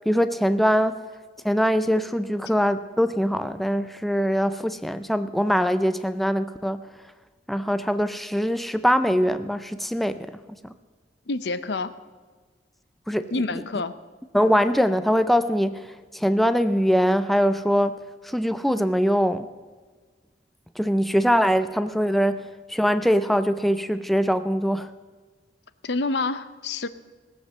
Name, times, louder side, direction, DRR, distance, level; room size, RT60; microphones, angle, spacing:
voice 1, 0.1-1.0 1.4-6.8 7.5-10.2 10.6-10.7 13.1-13.3 14.3-15.8 16.1-18.0 18.2-19.5 20.8-24.9, equal, ahead, 10 dB, 0.4 m, -22 dB
voice 2, 11.3-11.9 13.3-14.0 25.8-26.9, left 3 dB, 75° left, 13 dB, 0.7 m, -27 dB
18.0 x 7.5 x 7.5 m, 1.4 s
head